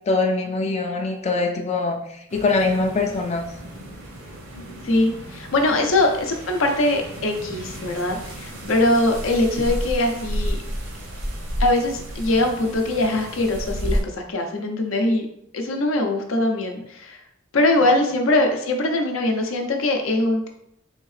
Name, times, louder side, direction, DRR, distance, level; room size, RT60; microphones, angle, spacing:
voice 1, 0.0-3.5 17.9-18.0, left 3 dB, 35° left, 2 dB, 0.3 m, -23 dB
sound 1, 2.3-14.0, equal, 75° right, 0.9 m, -32 dB
voice 2, 4.8-10.6 11.6-14.0 14.3-15.3 15.5-17.2 17.5-20.5, left 2 dB, 80° left, 3 dB, 0.6 m, -22 dB
3.5 x 2.7 x 3.2 m, 0.76 s
head